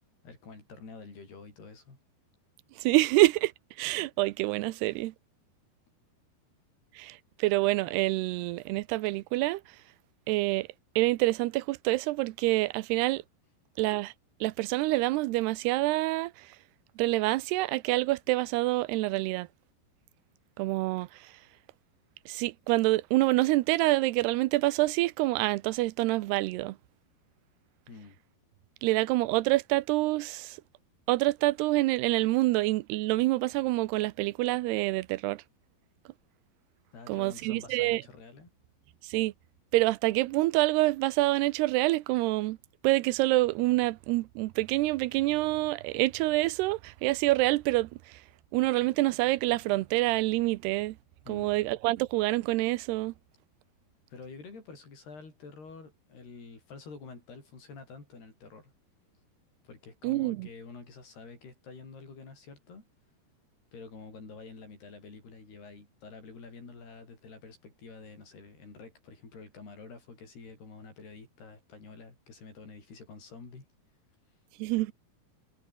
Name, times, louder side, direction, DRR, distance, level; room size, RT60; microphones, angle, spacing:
voice 1, 0.2-2.0 27.9-28.2 36.9-38.5 51.3-51.6 54.1-58.7 59.6-62.9 63.7-73.7, left 4 dB, 75° left, 10.0 m, -48 dB
voice 2, 2.8-3.5 3.8-5.1 7.0-9.6 10.3-10.7 11.0-13.2 13.8-14.1 14.4-16.5 17.0-19.5 20.6-21.3 22.3-26.8 28.8-30.6 31.1-35.4 37.1-38.0 39.0-39.3 39.7-42.6 42.8-48.2 48.5-51.0 51.3-53.1 60.0-60.5 74.6-74.9, right 19 dB, 90° right, 2.8 m, -27 dB
omnidirectional pair, 4.6 m